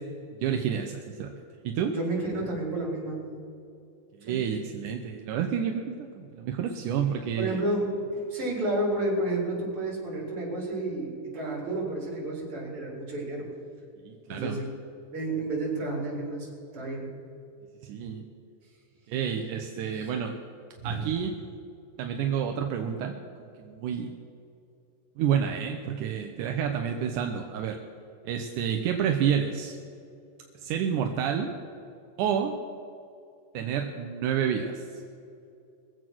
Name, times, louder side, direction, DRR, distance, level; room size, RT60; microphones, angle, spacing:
voice 1, 0.4-1.3 1.6-1.9 4.2-7.6 14.0-14.6 17.8-18.2 19.1-20.4 20.8-21.3 22.0-23.2 23.6-24.1 25.2-27.8 28.3-29.8 30.6-31.5 32.2-32.5 33.5-34.8, right 8 dB, 75° right, 4 dB, 2.0 m, -29 dB
voice 2, 1.9-3.2 4.3-4.4 7.1-13.5 14.3-14.7 15.1-16.5 16.7-17.1 19.9-20.1 20.8-21.1, right 2 dB, 35° right, -3 dB, 4.6 m, -31 dB
22.0 x 7.8 x 6.1 m, 2.6 s
omnidirectional pair, 4.4 m